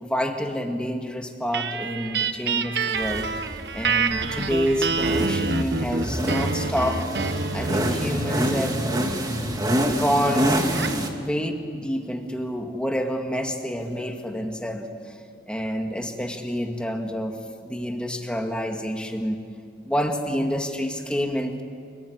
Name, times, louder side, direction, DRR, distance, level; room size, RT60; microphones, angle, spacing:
voice 1, 0.0-3.3 3.7-8.8 9.8-10.7 11.2-15.2 15.5-17.4 17.6-19.4 19.8-21.6, equal, 5° left, 3 dB, 2.0 m, -28 dB
sound 1, 1.5-11.1, right 4 dB, 75° right, 1.2 m, -28 dB
sound 2, 3.0-11.1, equal, 20° right, 2.1 m, -27 dB
29.0 x 19.0 x 9.9 m, 2.2 s
head